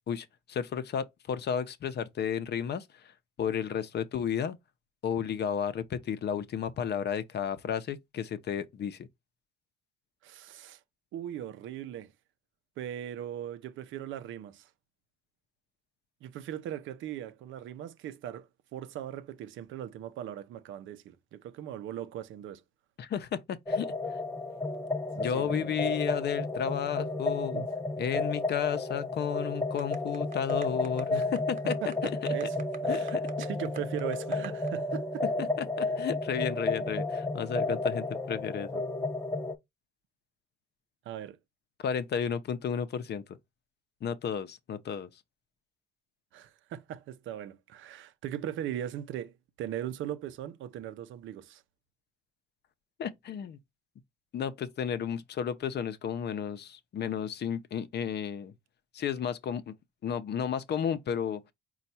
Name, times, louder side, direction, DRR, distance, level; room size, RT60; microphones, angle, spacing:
voice 1, 0.1-3.1 3.4-4.6 5.0-9.1 23.0-23.9 25.2-27.6 28.0-31.7 32.2-32.3 32.9-33.2 35.6-38.8 41.8-43.2 44.0-45.1 53.0-53.6 54.3-58.5 58.9-59.8 60.0-61.4, left 8 dB, 55° left, 0.6 m, -33 dB
voice 2, 10.2-10.8 11.1-12.1 12.8-14.7 16.2-22.6 25.2-25.8 27.5-27.7 31.1-31.3 31.8-32.6 32.8-35.2 41.1-41.4 46.3-51.6, right 10 dB, 80° right, 0.6 m, -39 dB
sound 1, 23.7-39.5, left 2 dB, 15° left, 0.6 m, -32 dB
sound 2, 29.8-34.7, right 5 dB, 45° right, 1.1 m, -44 dB
4.4 x 2.3 x 4.1 m
cardioid pair, 90°, 20 cm